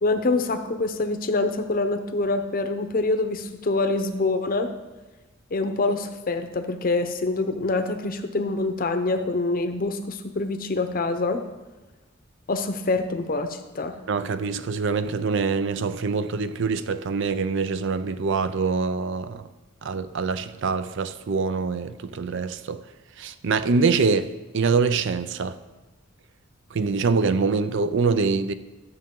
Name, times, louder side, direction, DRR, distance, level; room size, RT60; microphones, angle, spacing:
voice 1, 0.0-4.7 5.5-11.4 12.5-14.0, left 3 dB, 45° left, 0.7 m, -25 dB
voice 2, 14.1-19.4 19.8-22.8 23.2-24.3 24.5-25.6 26.7-28.5, right 4 dB, 60° right, 0.5 m, -24 dB
12.5 x 7.4 x 3.7 m
head